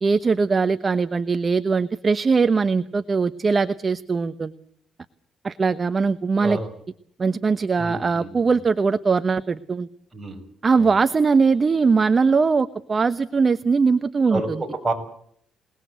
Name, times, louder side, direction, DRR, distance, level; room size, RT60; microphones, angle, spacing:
voice 1, 0.0-4.5 5.4-6.6 7.2-9.9 10.6-14.6, right 4 dB, 35° right, 12 dB, 1.0 m, -21 dB
voice 2, 6.4-6.7 7.8-8.3 10.1-10.4 10.8-10.9 14.3-14.9, right 2 dB, 15° right, 3 dB, 6.7 m, -28 dB
27.5 x 19.5 x 8.1 m, 0.67 s
cardioid pair, 90°, 0 cm